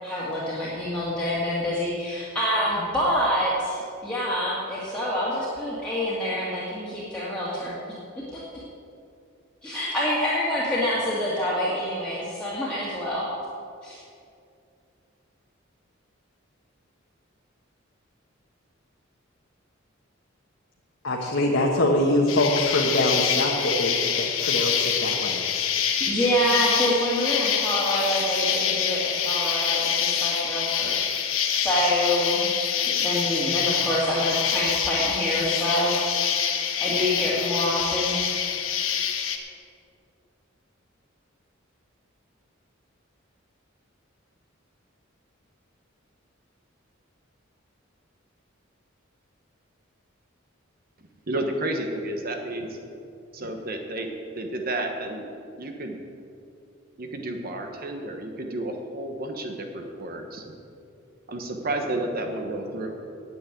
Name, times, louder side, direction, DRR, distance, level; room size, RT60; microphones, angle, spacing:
voice 1, 0.0-7.8 9.6-13.2 13.8-14.0 26.0-31.0 31.6-32.4 32.9-36.0 36.8-38.2, equal, 5° left, -9 dB, 2.0 m, -26 dB
voice 2, 21.0-25.4, left 1 dB, 65° left, -2 dB, 1.4 m, -24 dB
Insect, 22.3-39.4, left 8 dB, 90° left, 1.2 m, -26 dB
voice 3, 51.3-52.8 53.3-55.3 55.6-56.0 57.0-60.5 61.3-62.9, right 1 dB, 45° right, 3 dB, 1.2 m, -31 dB
9.8 x 8.3 x 9.2 m, 2.5 s
head